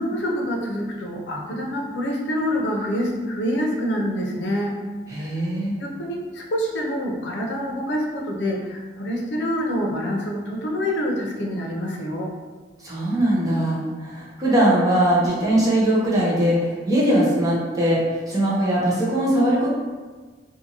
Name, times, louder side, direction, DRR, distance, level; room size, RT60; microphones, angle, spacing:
voice 1, 0.0-4.8 5.2-5.3 5.8-12.3, equal, 90° left, 0 dB, 0.5 m, -26 dB
voice 2, 5.1-5.7 12.8-19.7, right 1 dB, 20° right, -7 dB, 0.7 m, -21 dB
2.6 x 2.5 x 2.8 m, 1.4 s
head